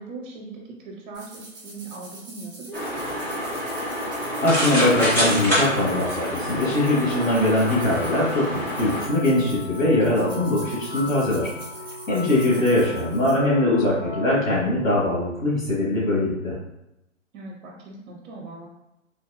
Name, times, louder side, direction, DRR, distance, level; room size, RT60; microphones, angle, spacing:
voice 1, 0.0-3.2 12.5-13.4 17.3-18.7, right 3 dB, 40° right, -1 dB, 1.0 m, -40 dB
sound 1, 1.1-13.4, right 1 dB, 10° right, 1.0 m, -44 dB
sound 2, 2.7-9.1, equal, 5° left, 0.5 m, -26 dB
voice 2, 4.4-11.5 12.1-16.5, left 1 dB, 85° left, -8 dB, 1.4 m, -22 dB
sound 3, 7.4-14.4, left 2 dB, 45° left, 1.2 m, -37 dB
3.4 x 2.6 x 2.5 m, 0.89 s
figure-of-eight pair, 125°, 39 cm